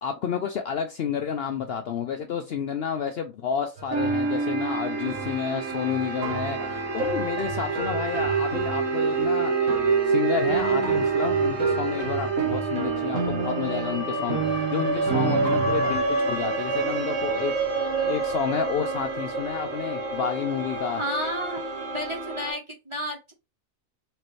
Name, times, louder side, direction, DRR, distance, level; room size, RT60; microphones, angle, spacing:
voice 1, 0.0-9.5 10.1-17.5 18.0-21.0, left 7 dB, 65° left, 0.6 m, -30 dB
sound 1, 3.8-16.0, right 5 dB, 85° right, 1.6 m, -30 dB
sound 2, 4.0-22.5, right 3 dB, 55° right, 1.4 m, -28 dB
voice 2, 21.0-21.6 21.9-23.3, equal, 25° right, 0.8 m, -31 dB
4.5 x 3.0 x 3.1 m
omnidirectional pair, 1.4 m